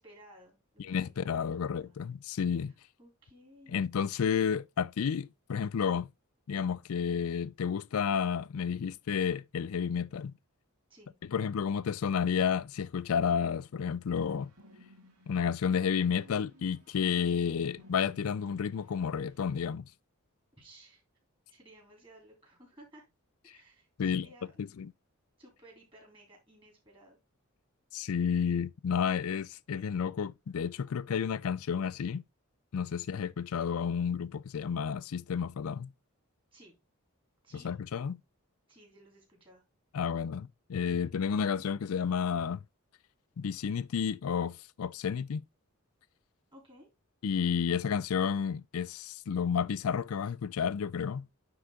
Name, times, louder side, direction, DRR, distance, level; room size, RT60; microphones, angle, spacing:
voice 1, 0.0-2.0 2.5-4.1 10.9-11.1 17.0-17.3 20.5-21.0 21.5-23.0 23.4-24.5 25.4-27.2 33.0-33.3 36.5-36.7 37.4-37.7 38.7-39.6 46.5-46.9, right 1 dB, 25° right, 3.3 m, -57 dB
voice 2, 0.8-2.7 3.7-6.1 6.5-10.3 11.3-14.5 15.3-19.9 24.0-24.3 24.6-24.9 27.9-32.2 32.7-35.9 37.5-38.2 39.9-42.6 43.4-45.4 47.2-51.3, left 7 dB, 75° left, 0.4 m, -31 dB
sound 1, 14.3-19.5, left 1 dB, 85° right, 2.1 m, -60 dB
9.5 x 3.8 x 3.6 m
head